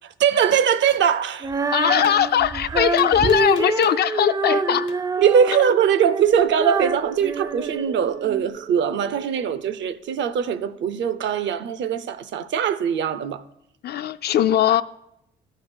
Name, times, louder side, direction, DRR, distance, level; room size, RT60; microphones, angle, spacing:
voice 1, 0.0-1.5 5.2-13.4, right 8 dB, 70° right, 0.6 m, -21 dB
Gunshot gunfire, 0.9-1.1 2.0-2.2 3.0-4.1 4.9-5.0, left 7 dB, 70° left, 0.8 m, -40 dB
Female singing, 1.4-8.5, right 4 dB, 20° right, 0.3 m, -26 dB
voice 2, 1.7-4.9 13.8-14.8, left 10 dB, 55° left, 0.4 m, -20 dB
sound 1, 6.2-11.4 11.7-11.8, right 9 dB, 85° right, 1.1 m, -38 dB
13.0 x 5.0 x 4.3 m
cardioid pair, 90°, 20 cm